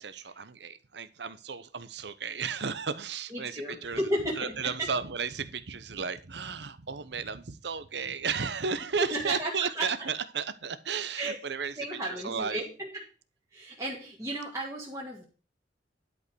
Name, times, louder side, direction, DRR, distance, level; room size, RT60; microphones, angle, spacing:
voice 1, 0.0-4.0 4.4-12.6, right 5 dB, 70° right, 13 dB, 0.9 m, -34 dB
voice 2, 3.3-4.9 9.0-9.9 11.2-11.4 11.8-13.0 13.5-15.2, right 1 dB, 20° right, -4 dB, 2.2 m, -33 dB
11.5 x 5.4 x 6.2 m, 0.35 s
head